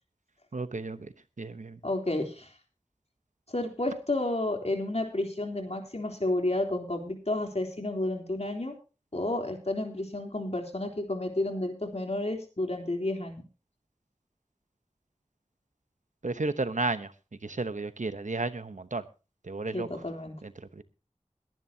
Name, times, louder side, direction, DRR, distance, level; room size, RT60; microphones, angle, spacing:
voice 1, 0.5-1.8 16.2-17.1 17.4-19.0 19.4-19.9 20.4-20.8, right 3 dB, 90° right, 1.0 m, -33 dB
voice 2, 1.8-2.5 3.5-8.8 9.1-13.4 19.7-20.3, left 2 dB, 60° left, 3.4 m, -31 dB
21.5 x 11.0 x 2.8 m
wide cardioid pair, 45°, 12 cm